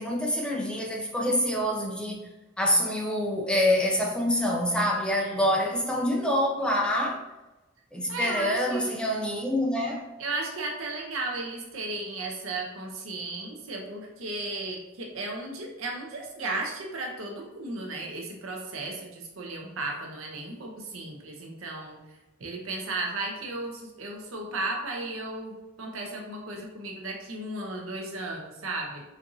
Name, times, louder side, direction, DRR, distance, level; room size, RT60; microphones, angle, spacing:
voice 1, 0.0-2.2 2.6-7.2 7.9-10.1, left 1 dB, 5° left, 0.5 m, -26 dB
voice 2, 8.1-8.9 10.2-22.0 22.4-29.0, right 2 dB, 85° right, 0.8 m, -35 dB
4.4 x 2.5 x 2.7 m
head